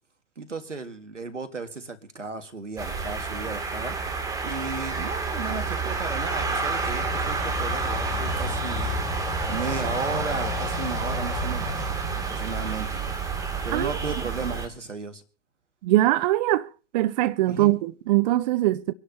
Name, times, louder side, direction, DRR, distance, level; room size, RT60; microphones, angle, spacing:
voice 1, 0.4-9.0 9.5-11.8 12.1-13.0 13.6-15.2 17.4-17.8, right 4 dB, 85° right, 1.9 m, -35 dB
sound 1, 2.8-14.7, right 3 dB, 10° right, 2.5 m, -29 dB
voice 2, 15.8-16.7 16.9-18.9, right 16 dB, 40° right, 0.6 m, -22 dB
25.5 x 11.5 x 2.8 m
figure-of-eight pair, 105°, 35 cm